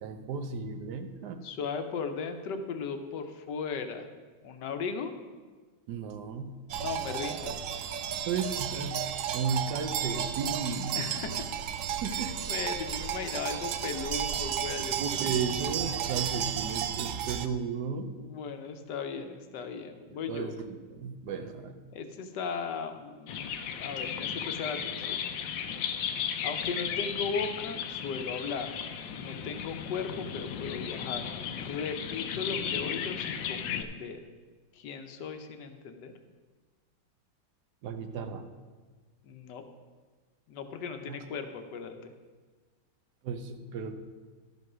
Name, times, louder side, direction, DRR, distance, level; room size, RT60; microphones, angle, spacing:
voice 1, 0.0-1.4 5.9-6.6 8.3-11.0 12.0-12.3 15.0-18.1 20.1-21.8 37.8-38.5 41.1-41.2 43.2-44.0, right 5 dB, 70° right, 8 dB, 1.2 m, -34 dB
voice 2, 1.4-4.1 4.4-5.1 6.8-7.6 10.9-11.5 12.1-15.3 18.2-20.5 21.9-23.4 23.7-25.2 26.4-28.8 29.1-31.3 31.7-34.2 34.7-36.1 39.2-39.6 40.5-42.1, left 5 dB, 70° left, 7 dB, 1.4 m, -37 dB
sound 1, 6.7-17.5, right 9 dB, 85° right, 0.7 m, -33 dB
sound 2, 23.3-33.8, left 8 dB, 90° left, 1.4 m, -35 dB
12.5 x 5.4 x 6.1 m, 1.4 s
omnidirectional pair, 2.0 m